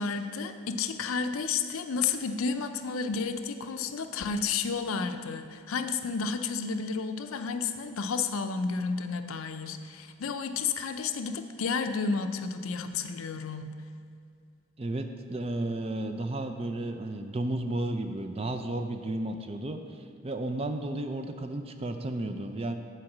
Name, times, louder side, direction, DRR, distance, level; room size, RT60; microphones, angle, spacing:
voice 1, 0.0-13.7, left 5 dB, 75° left, 8 dB, 0.5 m, -31 dB
voice 2, 14.8-22.7, right 1 dB, 25° right, 7 dB, 0.4 m, -33 dB
7.7 x 4.6 x 7.2 m, 2.3 s
head